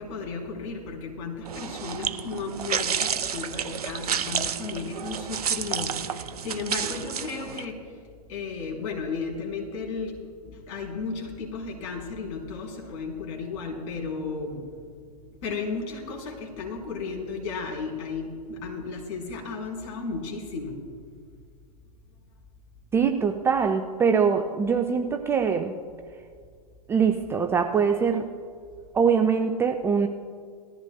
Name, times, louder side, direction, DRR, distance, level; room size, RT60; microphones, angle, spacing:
voice 1, 0.0-7.8 8.3-10.1 10.7-14.6 15.4-20.8, left 4 dB, 45° left, -1 dB, 3.3 m, -34 dB
sound 1, 1.4-7.6, right 8 dB, 65° right, 0.6 m, -30 dB
voice 2, 22.9-25.7 26.9-28.2 28.9-30.1, right 6 dB, 10° right, 5 dB, 0.4 m, -23 dB
19.5 x 14.0 x 2.2 m, 2.1 s
figure-of-eight pair, 105°, 21 cm